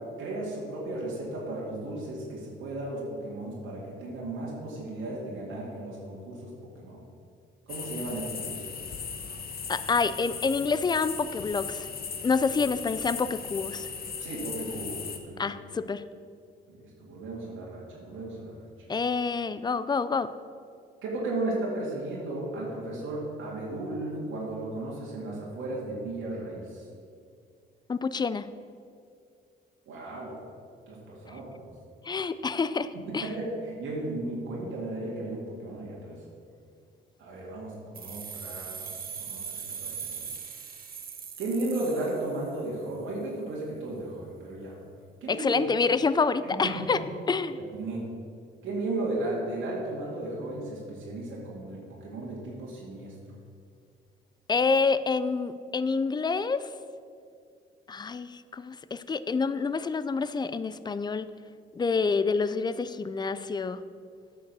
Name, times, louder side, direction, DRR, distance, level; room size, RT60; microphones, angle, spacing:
voice 1, 0.2-7.0 7.7-8.7 14.2-15.6 16.7-18.7 21.0-26.9 29.9-30.4 30.9-31.7 32.9-36.2 37.2-40.3 41.4-44.7 45.2-45.6 46.4-47.0 47.6-48.0 48.6-53.1, right 2 dB, 85° right, -5 dB, 2.1 m, -35 dB
sound 1, 7.7-15.2, left 6 dB, 50° left, 1.0 m, -37 dB
voice 2, 9.7-11.9 12.2-13.9 15.4-16.0 18.9-20.3 27.9-28.5 32.0-33.3 45.3-47.0 47.3-47.6 54.5-56.7 57.9-61.3 61.8-63.8, left 4 dB, 20° left, 14 dB, 0.4 m, -27 dB
sound 2, 37.9-42.7, right 7 dB, 50° right, 1.0 m, -40 dB
8.8 x 5.4 x 6.7 m, 2.3 s
cardioid pair, 90°, 20 cm